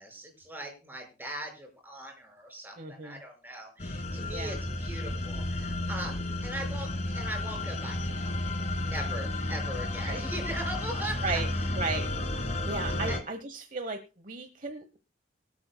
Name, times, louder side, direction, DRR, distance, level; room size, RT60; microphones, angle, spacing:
voice 1, 0.0-6.9 7.1-8.5 8.8-11.4 13.1-13.2, right 1 dB, 10° right, 2 dB, 5.3 m, -40 dB
voice 2, 2.8-3.2 4.3-4.6 10.0-10.2 11.2-11.5 11.7-12.1 12.7-15.0, right 3 dB, 45° right, 8 dB, 1.0 m, -35 dB
sound 1, 3.8-13.2, left 1 dB, 40° left, 1.7 m, -32 dB
24.5 x 8.5 x 2.2 m, 0.32 s
head